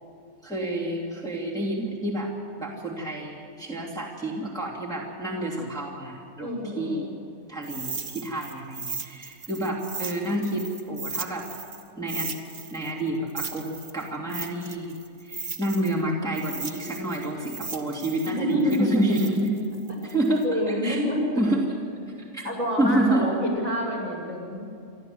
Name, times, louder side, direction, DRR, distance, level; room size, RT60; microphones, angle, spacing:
voice 1, 0.4-2.3 2.6-6.5 6.7-7.1 7.5-11.5 12.0-12.4 12.7-19.6 20.1-21.0 21.4-21.6 22.3-22.4 22.8-23.2, right 1 dB, ahead, -5 dB, 2.9 m, -28 dB
voice 2, 6.4-7.1 18.2-18.9 20.4-21.4 22.4-24.6, equal, 60° right, -1 dB, 6.6 m, -27 dB
sound 1, 7.6-11.8 12.1-16.0 16.3-20.4, right 5 dB, 35° right, 1.1 m, -36 dB
28.5 x 12.5 x 7.9 m, 2.4 s
omnidirectional pair, 1.5 m